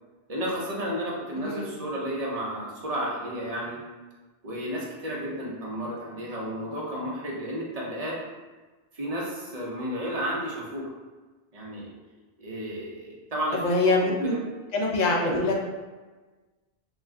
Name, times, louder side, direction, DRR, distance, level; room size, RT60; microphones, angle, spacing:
voice 1, 0.3-3.8 4.4-8.2 8.9-10.9 11.5-11.9 12.4-13.6 13.8-13.9 14.2-14.4, equal, 45° right, -4 dB, 0.6 m, -32 dB
voice 2, 1.4-1.8 13.6-14.3 14.7-15.6, left 2 dB, 55° left, -1 dB, 0.5 m, -24 dB
2.3 x 2.2 x 3.5 m, 1.3 s
omnidirectional pair, 1.1 m